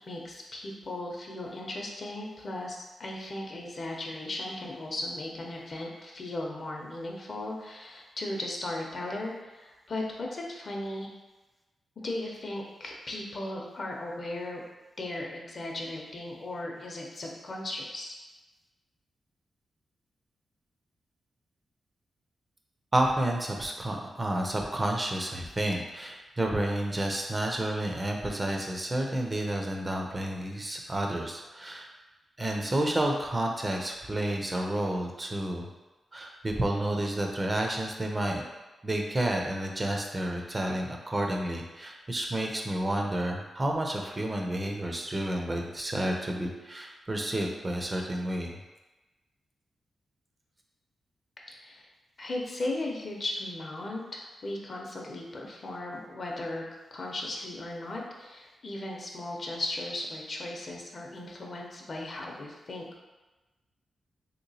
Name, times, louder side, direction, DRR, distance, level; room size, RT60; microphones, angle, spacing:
voice 1, 0.1-11.1 12.0-14.6 15.0-18.2 51.5-51.9 52.2-56.6 56.9-63.0, left 2 dB, 45° left, 0 dB, 0.6 m, -37 dB
voice 2, 22.9-31.9 32.4-35.7 36.1-38.4 38.8-48.6, right 1 dB, 25° right, 1 dB, 0.4 m, -30 dB
3.2 x 2.8 x 2.7 m, 1.1 s
cardioid pair, 100°, 0 cm